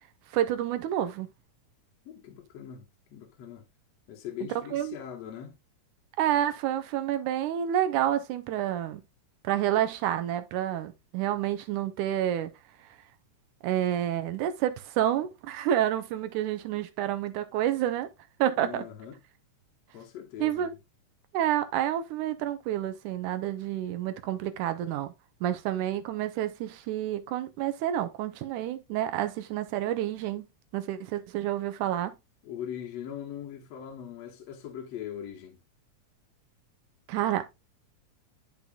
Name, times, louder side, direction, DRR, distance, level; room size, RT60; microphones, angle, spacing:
voice 1, 0.3-1.3 4.7-5.0 6.2-9.0 9.4-12.5 13.6-18.1 18.4-18.8 20.4-20.7 21.3-25.1 25.4-30.5 30.7-32.1 37.1-37.5, right 11 dB, 80° right, 2.2 m, -29 dB
voice 2, 2.1-3.7 4.1-5.6 18.6-19.2 19.9-20.8 32.4-35.6, left 9 dB, 65° left, 1.9 m, -41 dB
10.5 x 5.5 x 2.3 m
omnidirectional pair, 3.6 m